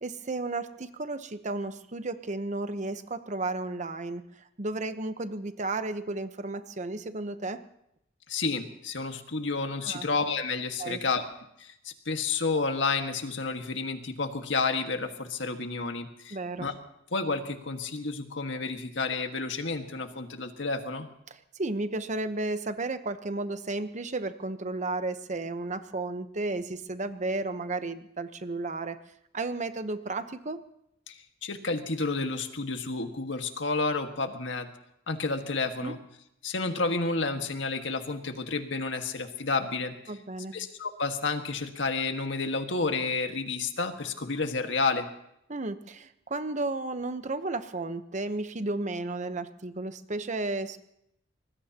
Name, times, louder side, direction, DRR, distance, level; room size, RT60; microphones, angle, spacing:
voice 1, 0.0-4.2 4.6-7.6 9.8-10.1 10.8-11.0 16.3-16.7 21.3-29.0 29.3-30.6 35.8-36.0 40.1-40.5 45.5-50.8, right 2 dB, 40° right, 10 dB, 0.9 m, -33 dB
voice 2, 8.3-11.2 11.6-16.7 17.1-21.1 31.1-34.7 35.1-36.0 36.4-39.9 40.5-45.1, left 3 dB, 75° left, 6 dB, 1.6 m, -30 dB
24.5 x 20.0 x 2.9 m, 0.76 s
head